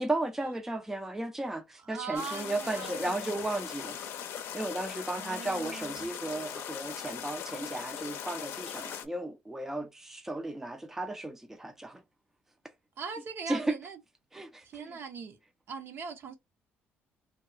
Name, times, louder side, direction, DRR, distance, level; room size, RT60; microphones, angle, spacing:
voice 1, 0.0-4.0 4.5-12.0 13.5-13.8 14.3-15.0, right 2 dB, 10° right, 0.4 m, -35 dB
voice 2, 1.8-3.4 5.1-6.1 13.0-14.0 14.6-15.4 15.7-16.3, right 5 dB, 60° right, 0.8 m, -41 dB
sound 1, 2.1-9.0, left 9 dB, 70° left, 0.5 m, -40 dB
2.3 x 2.3 x 3.8 m
cardioid pair, 95°, 4 cm